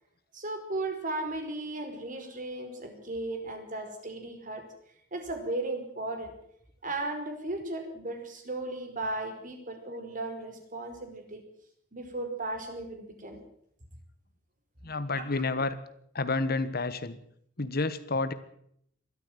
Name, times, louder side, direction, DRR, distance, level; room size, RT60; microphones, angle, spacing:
voice 1, 0.3-4.6 5.1-6.3 6.8-11.4 11.9-13.4 15.1-15.2, right 2 dB, 45° right, 5 dB, 4.9 m, -36 dB
voice 2, 14.8-15.8 16.1-17.2 17.6-18.3, left 3 dB, 55° left, 13 dB, 1.4 m, -29 dB
21.5 x 13.5 x 9.3 m, 0.70 s
head